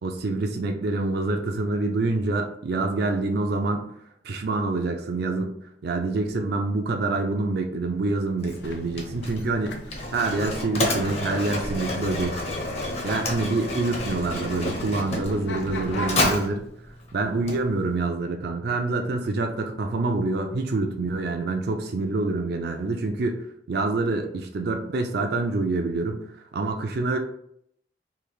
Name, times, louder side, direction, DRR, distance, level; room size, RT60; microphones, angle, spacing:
voice 1, 0.0-3.9 4.2-5.6 5.8-12.4 13.0-16.7 17.1-26.2 26.5-27.2, right 3 dB, 60° right, 4 dB, 0.4 m, -26 dB
Mechanisms, 8.4-18.1, left 2 dB, 35° left, 0.7 m, -31 dB
sound 1, 8.6-16.4, left 1 dB, 75° left, 0.5 m, -36 dB
3.3 x 2.5 x 3.8 m, 0.71 s
head